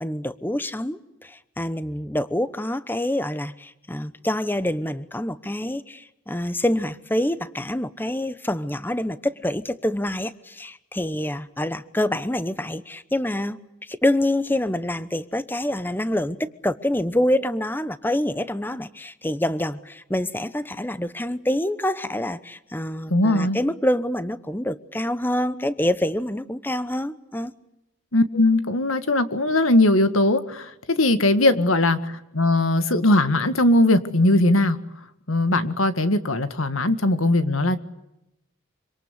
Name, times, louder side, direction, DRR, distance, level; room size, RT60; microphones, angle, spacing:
voice 1, 0.0-27.5, left 1 dB, 10° left, 14 dB, 0.9 m, -26 dB
voice 2, 23.1-23.6 28.1-34.8 35.3-37.8, left 1 dB, 90° left, 11 dB, 1.9 m, -20 dB
26.0 x 25.5 x 8.3 m, 0.90 s
head